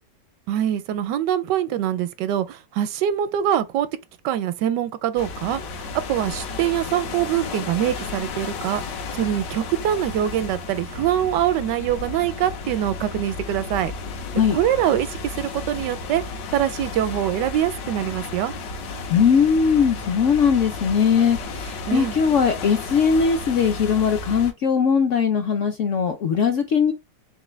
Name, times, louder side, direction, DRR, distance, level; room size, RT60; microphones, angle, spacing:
voice 1, 0.5-3.9 4.2-5.6 6.1-13.9 14.5-16.2 16.5-18.5 21.9-22.1, right 11 dB, 80° right, 1.2 m, -24 dB
sound 1, 5.2-24.5, left 3 dB, 85° left, 1.6 m, -33 dB
voice 2, 19.1-26.9, left 6 dB, 65° left, 0.8 m, -20 dB
3.9 x 3.7 x 3.1 m
omnidirectional pair, 1.9 m